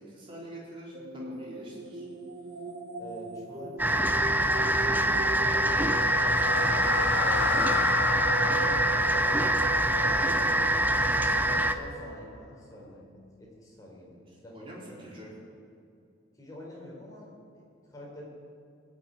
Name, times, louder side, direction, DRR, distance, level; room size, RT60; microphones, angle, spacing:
voice 1, 0.0-2.1 6.8-7.2 14.3-15.3, right 1 dB, 25° right, -5 dB, 4.1 m, -46 dB
sound 1, 0.9-12.3, right 3 dB, 50° right, 1.2 m, -38 dB
voice 2, 3.0-6.1 7.1-7.8 8.3-11.0 11.3-15.1 16.3-18.3, left 1 dB, 20° left, -4 dB, 4.5 m, -47 dB
sound 2, 3.8-11.8, right 1 dB, 10° right, 0.5 m, -25 dB
sound 3, 5.4-11.6, left 6 dB, 80° left, 0.6 m, -34 dB
20.5 x 7.3 x 9.2 m, 2.4 s
head